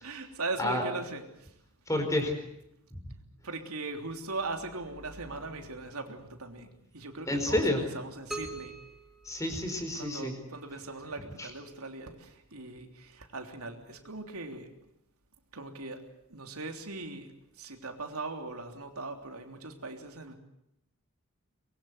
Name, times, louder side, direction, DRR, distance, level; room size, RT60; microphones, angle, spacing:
voice 1, 0.0-1.5 3.4-8.7 9.9-14.7 15.5-16.0 16.3-17.3 17.6-20.3, right 3 dB, 85° right, 4 dB, 3.4 m, -39 dB
voice 2, 1.9-2.3 3.0-3.1 7.3-7.8 9.2-10.3 11.4-11.5, left 1 dB, 15° left, 5 dB, 4.6 m, -29 dB
sound 1, 8.3-10.2, right 2 dB, ahead, 4.0 m, -42 dB
24.0 x 22.5 x 8.0 m, 0.79 s
head